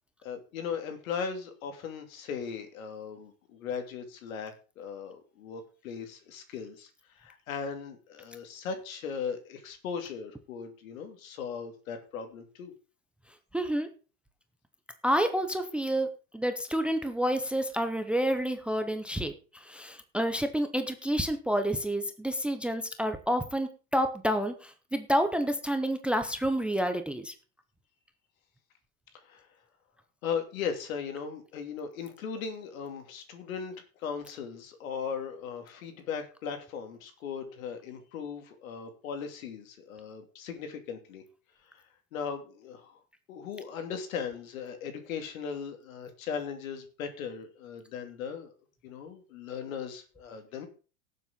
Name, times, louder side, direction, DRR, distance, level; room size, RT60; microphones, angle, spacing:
voice 1, 0.2-12.7 29.1-29.5 30.2-41.2 41.7-41.8 42.1-43.0 43.3-48.5 48.8-50.7, left 6 dB, 75° left, 6 dB, 2.9 m, -38 dB
voice 2, 13.5-13.9 15.0-16.1 16.3-27.3, equal, 5° right, 8 dB, 0.7 m, -29 dB
17.5 x 7.5 x 3.9 m, 0.36 s
supercardioid pair, 145°, 41 cm